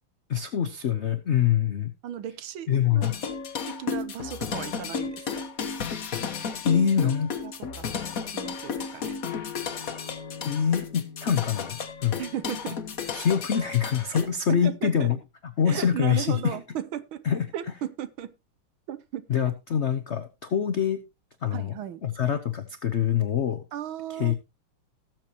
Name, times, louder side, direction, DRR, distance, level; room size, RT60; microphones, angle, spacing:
voice 1, 0.3-1.9 2.7-3.1 6.6-7.3 10.4-12.2 13.1-15.2 15.6-16.6 17.2-17.5 19.3-21.0 21.4-21.7 22.0-23.6 24.1-24.3, left 8 dB, 80° left, 0.6 m, -25 dB
voice 2, 2.0-3.1 3.7-5.4 7.4-7.9 8.3-9.2 12.1-12.8 14.1-14.2 14.5-15.1 15.7-17.2 17.5-18.3 18.9-19.3 21.5-22.0 23.7-24.4, right 10 dB, 70° right, 1.6 m, -36 dB
sound 1, 3.0-14.3, left 6 dB, 50° left, 1.3 m, -33 dB
18.0 x 7.6 x 2.9 m
omnidirectional pair, 2.4 m